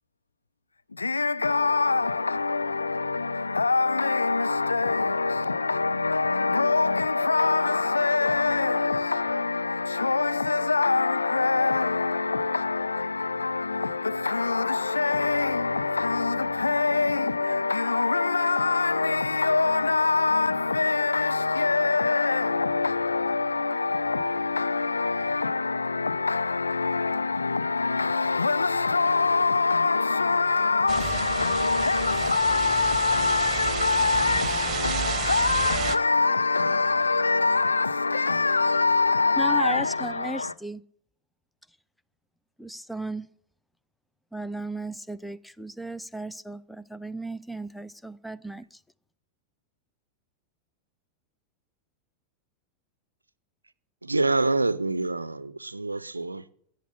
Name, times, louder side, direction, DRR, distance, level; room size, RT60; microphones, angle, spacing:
voice 1, 0.9-40.5, left 3 dB, 80° left, 0.5 m, -24 dB
sound 1, 30.9-36.0, right 11 dB, 30° right, 1.2 m, -32 dB
voice 2, 39.4-40.8 42.6-43.3 44.3-48.8, right 1 dB, 5° left, 0.6 m, -35 dB
voice 3, 54.0-56.5, right 3 dB, 80° right, 0.6 m, -26 dB
14.5 x 8.3 x 8.5 m
figure-of-eight pair, 90°, 0 cm